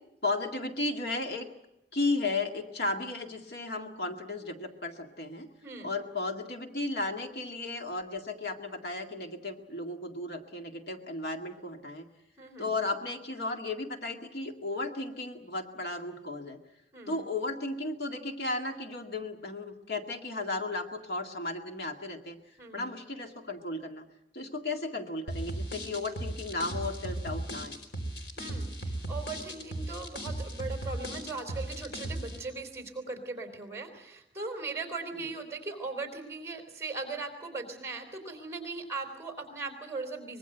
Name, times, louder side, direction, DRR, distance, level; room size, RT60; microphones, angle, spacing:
voice 1, 0.2-1.5 1.9-5.5 5.8-12.0 12.6-16.6 17.1-22.4 22.7-24.1 24.3-27.8 35.1-35.2, left 2 dB, 65° left, 4 dB, 2.1 m, -34 dB
voice 2, 12.4-12.7 16.9-17.2 22.6-22.9 28.4-40.4, right 3 dB, 15° right, 4 dB, 3.8 m, -39 dB
sound 1, 25.3-32.4, right 1 dB, 80° left, 4.7 m, -36 dB
24.5 x 21.5 x 8.0 m, 0.89 s
head